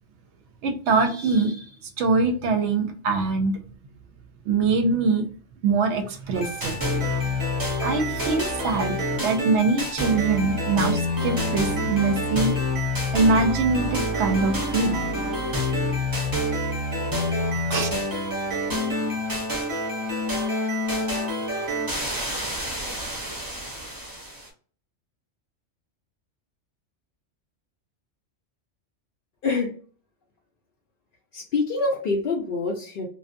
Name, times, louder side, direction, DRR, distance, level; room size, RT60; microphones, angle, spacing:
voice 1, 0.6-3.5 4.5-5.3 5.6-6.8 7.8-8.9 9.2-12.5 13.1-15.0 17.7-17.9, right 3 dB, 70° right, 6 dB, 0.8 m, -23 dB
sound 1, 6.3-24.5, left 1 dB, 20° right, 0.6 m, -27 dB
voice 2, 31.3-33.1, left 3 dB, 60° left, -1 dB, 0.6 m, -25 dB
2.5 x 2.2 x 2.5 m, 0.43 s
omnidirectional pair, 1.3 m